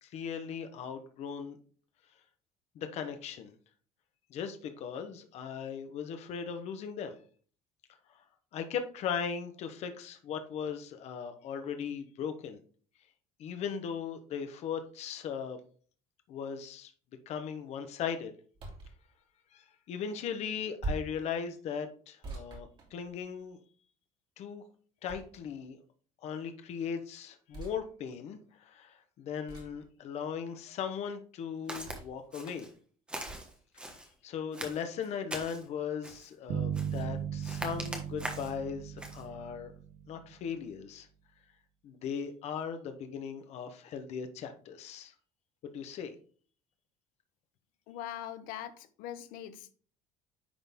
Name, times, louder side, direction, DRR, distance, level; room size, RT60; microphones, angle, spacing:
voice 1, 0.0-1.6 2.7-3.5 4.3-7.2 8.5-12.6 13.4-15.6 16.3-16.9 17.3-18.3 19.5-23.6 24.4-24.6 25.0-25.8 26.2-32.7 34.2-39.7 40.1-41.1 41.8-45.1 45.6-46.2, left 7 dB, 50° left, 1.1 m, -38 dB
sound 1, 18.5-19.0 20.8-21.2 22.2-23.4 25.1-25.7 27.5-27.8 29.5-29.8 31.9-32.3 33.3-33.5, right 2 dB, 35° right, 2.5 m, -41 dB
Walk footsteps, 31.7-32.0 32.3-32.7 33.1-34.1 34.5-35.6 36.0-36.3 36.7-37.1 37.4-38.6 39.0-39.2, right 1 dB, 5° right, 1.2 m, -41 dB
sound 2, 36.5-40.5, right 8 dB, 65° right, 1.2 m, -37 dB
voice 2, 47.9-49.7, left 11 dB, 80° left, 0.8 m, -42 dB
10.0 x 4.0 x 3.6 m
cardioid pair, 165°, 14 cm